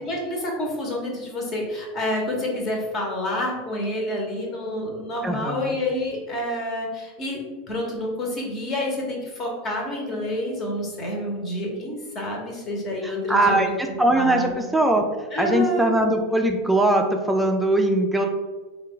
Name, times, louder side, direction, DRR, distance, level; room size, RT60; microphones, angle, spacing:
voice 1, 0.0-7.4 7.7-13.7 14.1-14.6 15.3-15.9, left 1 dB, 35° left, -1 dB, 1.1 m, -28 dB
voice 2, 5.2-5.7 13.0-15.0 15.4-18.3, right 1 dB, 5° right, 3 dB, 0.4 m, -21 dB
3.1 x 2.4 x 3.7 m, 1.2 s
hypercardioid pair, 85°, 0 cm